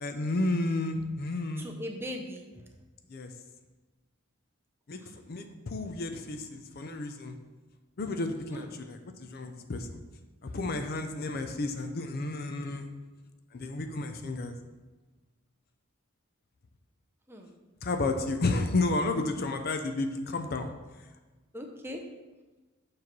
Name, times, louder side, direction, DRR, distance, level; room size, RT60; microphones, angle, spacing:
voice 1, 0.0-1.7 3.1-3.3 4.9-7.3 8.0-10.0 10.4-12.9 13.5-14.5 17.8-20.7, left 2 dB, 45° left, 7 dB, 0.5 m, -32 dB
voice 2, 1.6-2.5 5.0-5.1 8.5-8.8 17.3-17.5 21.5-22.0, equal, 10° right, 2 dB, 0.6 m, -39 dB
7.1 x 3.2 x 5.9 m, 1.2 s
head